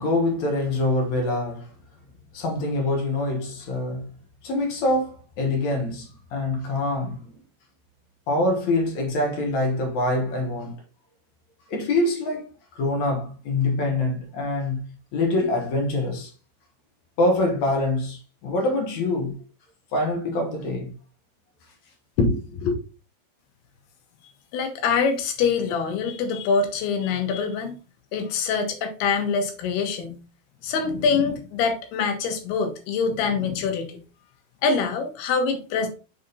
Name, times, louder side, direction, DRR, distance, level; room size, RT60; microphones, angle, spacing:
voice 1, 0.0-1.7 2.3-4.1 4.4-7.3 8.3-10.8 11.7-12.5 12.8-14.8 15.1-16.3 17.2-19.4 19.9-20.9 22.2-22.8, left 2 dB, 60° left, 2.3 m, -25 dB
voice 2, 24.5-27.7 28.1-30.2 30.6-34.0 34.6-35.9, left 5 dB, 85° left, 3.1 m, -24 dB
6.7 x 3.9 x 3.9 m
omnidirectional pair, 4.5 m